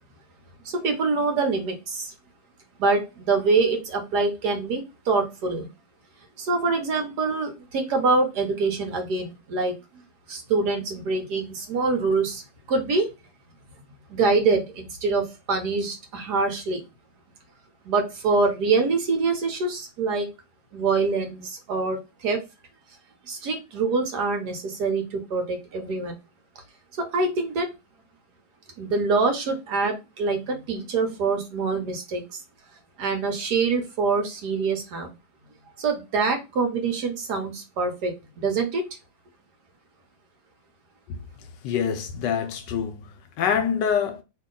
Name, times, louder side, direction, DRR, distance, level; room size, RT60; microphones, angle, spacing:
voice 1, 0.6-2.1 2.8-5.7 6.4-9.7 10.3-12.4 12.7-13.1 14.1-16.8 17.8-20.3 20.7-22.4 23.3-26.2 27.0-27.7 28.8-32.4 33.0-35.1 35.8-38.8, right 4 dB, 65° right, 1.3 m, -25 dB
voice 2, 41.1-44.2, left 7 dB, 75° left, 1.2 m, -26 dB
2.8 x 2.8 x 3.7 m
omnidirectional pair, 2.1 m